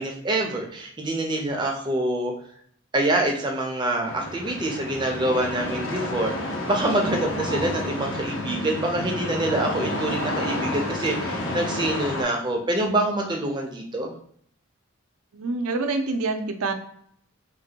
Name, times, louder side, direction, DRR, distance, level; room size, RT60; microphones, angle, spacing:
voice 1, 0.0-2.3 2.9-14.1, right 1 dB, 20° right, 1 dB, 0.4 m, -26 dB
sound 1, 4.0-12.2, left 1 dB, 60° left, 0.6 m, -30 dB
voice 2, 15.3-16.7, right 3 dB, 85° right, 6 dB, 0.5 m, -26 dB
3.2 x 2.2 x 2.8 m, 0.65 s
head